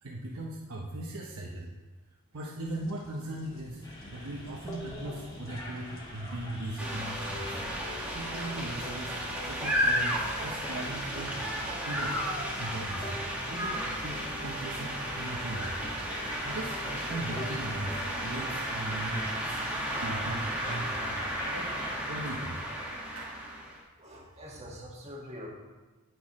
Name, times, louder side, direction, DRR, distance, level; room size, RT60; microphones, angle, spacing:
voice 1, 0.0-1.7 2.3-3.8 4.1-7.6 8.1-9.2 9.4-11.3 11.9-12.2 12.6-13.2 13.5-15.8 16.4-21.2 21.5-21.7 22.1-22.6 23.1-23.3, right 1 dB, 75° right, -2 dB, 0.9 m, -38 dB
sound 1, 2.7-20.0, left 1 dB, 60° left, 1.0 m, -51 dB
sound 2, 3.8-21.9, equal, 20° left, 1.5 m, -45 dB
sound 3, 6.8-23.8, equal, 5° right, 1.7 m, -34 dB
voice 2, 24.0-25.5, equal, 30° right, -3 dB, 1.8 m, -44 dB
14.5 x 6.3 x 3.2 m, 1.2 s
head